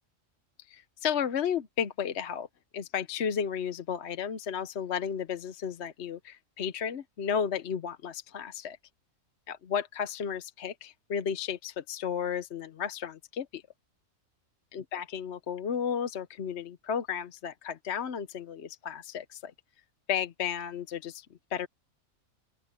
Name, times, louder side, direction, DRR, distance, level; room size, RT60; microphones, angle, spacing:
voice 1, 0.7-2.5 2.7-8.8 9.5-13.6 14.7-19.5 20.1-21.3 21.5-21.7, left 7 dB, 55° left, 1.1 m, -33 dB
open air
omnidirectional pair, 1.5 m